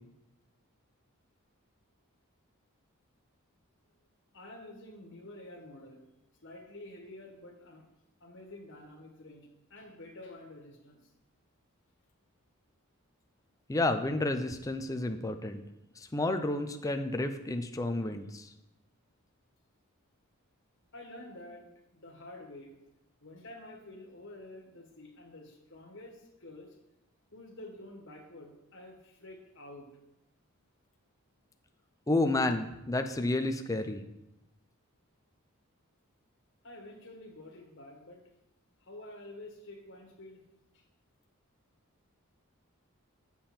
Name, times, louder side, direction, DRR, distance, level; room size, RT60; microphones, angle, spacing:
voice 1, 4.3-6.0 6.4-7.8 8.2-11.0 20.9-22.7 23.2-26.7 27.3-29.9 36.6-38.2 38.8-40.4 40.7-40.8, left 1 dB, 60° left, 0 dB, 1.6 m, -49 dB
voice 2, 13.7-15.6 16.0-18.5 32.1-34.0, left 2 dB, 15° left, 7 dB, 0.5 m, -31 dB
7.6 x 6.9 x 4.3 m, 0.90 s
head